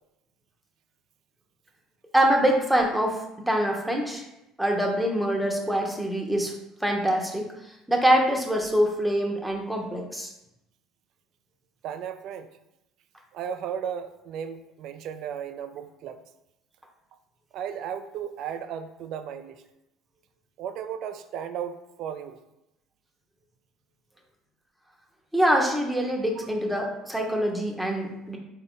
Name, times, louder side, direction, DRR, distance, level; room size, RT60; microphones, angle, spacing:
voice 1, 2.1-3.2 3.5-4.2 4.6-6.5 6.8-7.5 7.9-10.3 25.3-28.4, equal, 5° right, 1 dB, 0.8 m, -24 dB
voice 2, 11.8-12.5 13.3-16.2 17.5-19.6 20.6-22.4 26.4-26.5, right 8 dB, 65° right, 9 dB, 0.3 m, -35 dB
4.0 x 2.4 x 3.6 m, 0.89 s
hypercardioid pair, 65°, 0 cm